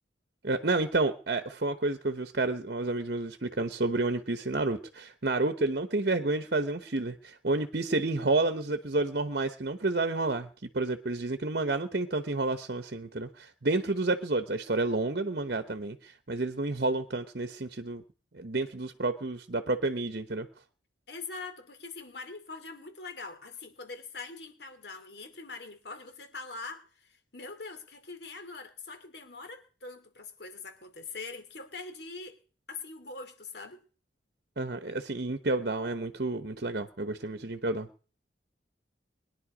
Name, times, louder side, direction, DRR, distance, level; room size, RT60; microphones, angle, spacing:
voice 1, 0.4-18.0 18.3-20.5 34.6-37.9, right 2 dB, 55° right, 9 dB, 1.0 m, -30 dB
voice 2, 21.1-32.4 32.7-33.8, left 4 dB, 60° left, 6 dB, 2.6 m, -43 dB
21.5 x 10.5 x 5.0 m, 0.40 s
head